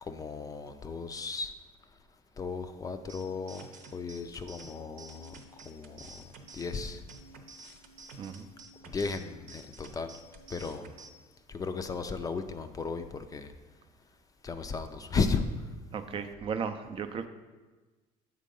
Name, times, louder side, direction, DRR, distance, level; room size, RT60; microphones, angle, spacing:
voice 1, 0.0-1.5 2.4-3.7 3.9-5.3 5.7-6.2 6.5-7.0 8.9-10.1 10.5-10.9 11.5-13.5 14.4-15.4, left 4 dB, 25° left, 8 dB, 0.4 m, -35 dB
sound 1, 3.1-11.1, right 3 dB, 75° right, 0.8 m, -51 dB
voice 2, 15.9-17.3, right 6 dB, 40° right, 9 dB, 0.4 m, -35 dB
7.4 x 3.8 x 5.3 m, 1.3 s
cardioid pair, 115°, 14 cm